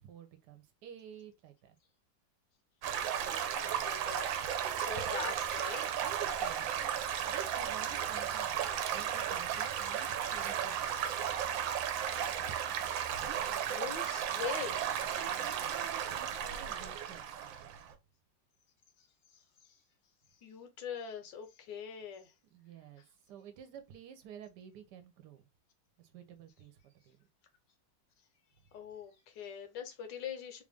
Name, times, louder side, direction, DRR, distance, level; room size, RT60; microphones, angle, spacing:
voice 1, 0.0-1.8 6.0-6.9 7.3-11.3 15.1-17.8 22.5-25.4 26.0-27.2, right 9 dB, 70° right, 1.3 m, -51 dB
Stream / Gurgling / Trickle dribble, 2.8-17.9, right 9 dB, 85° right, 1.3 m, -35 dB
voice 2, 3.6-5.9 10.9-11.0 12.5-14.8 19.0-19.8 20.4-22.3 28.7-30.6, left 7 dB, 75° left, 1.4 m, -44 dB
3.3 x 2.5 x 3.3 m
omnidirectional pair, 2.0 m